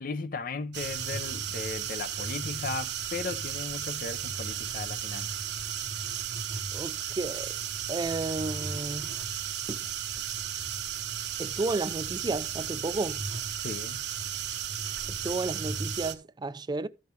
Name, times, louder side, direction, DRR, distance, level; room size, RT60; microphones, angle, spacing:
voice 1, 0.0-5.3 13.6-14.0, left 4 dB, 55° left, 0.6 m, -36 dB
sound 1, 0.7-16.1, right 8 dB, 80° right, 1.1 m, -34 dB
voice 2, 6.7-7.6 7.9-9.1 9.7-9.8 11.4-13.2 15.1-16.9, right 3 dB, 25° right, 0.4 m, -32 dB
13.5 x 6.3 x 3.3 m
head